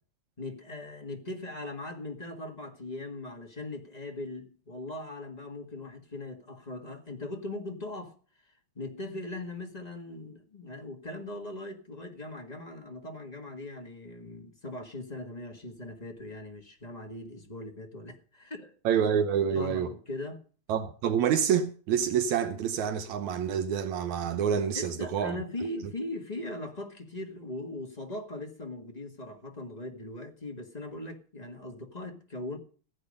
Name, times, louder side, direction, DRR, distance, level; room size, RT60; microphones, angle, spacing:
voice 1, 0.4-8.2 8.7-18.7 19.5-20.4 24.7-32.6, left 2 dB, 20° left, 1.2 m, -40 dB
voice 2, 18.9-19.9 20.7-25.4, right 8 dB, 80° right, 2.3 m, -27 dB
16.0 x 8.8 x 5.2 m
omnidirectional pair, 3.3 m